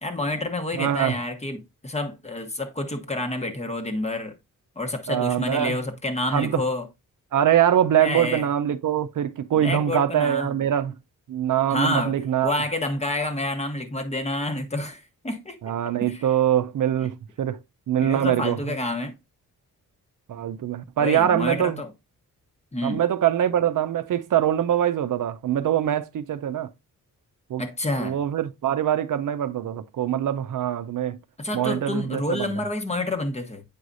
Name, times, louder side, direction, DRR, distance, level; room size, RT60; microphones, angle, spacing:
voice 1, 0.0-4.3 4.8-6.9 8.0-8.4 9.6-10.5 11.7-12.2 12.4-15.6 16.1-16.3 18.0-19.2 21.0-21.9 22.7-23.0 27.6-28.2 31.4-33.6, left 2 dB, 20° left, 1.0 m, -28 dB
voice 2, 0.7-1.2 5.1-5.8 6.3-6.6 7.3-10.9 11.3-12.5 15.6-17.6 17.9-18.8 20.3-21.8 22.8-26.7 27.5-27.6 28.0-31.2 31.5-32.6, right 10 dB, 65° right, 0.6 m, -23 dB
8.3 x 4.8 x 2.6 m
wide cardioid pair, 120°, 34 cm